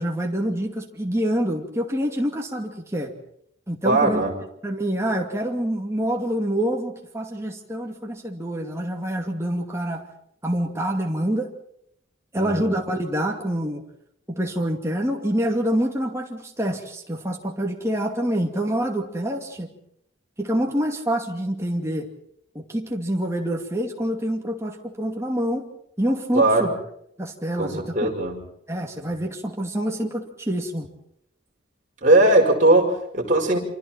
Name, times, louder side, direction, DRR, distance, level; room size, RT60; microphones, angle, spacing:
voice 1, 0.0-3.1 3.7-4.3 4.6-10.0 10.4-11.5 12.3-13.8 14.3-19.7 20.4-22.1 22.5-25.7 26.0-26.8 27.2-27.9 28.7-30.9, equal, 15° right, 1 dB, 2.5 m, -26 dB
voice 2, 3.8-4.3 12.4-12.7 26.3-26.7 27.6-28.4 32.0-33.6, right 2 dB, 40° right, 0 dB, 5.3 m, -19 dB
28.5 x 25.5 x 4.5 m, 0.73 s
head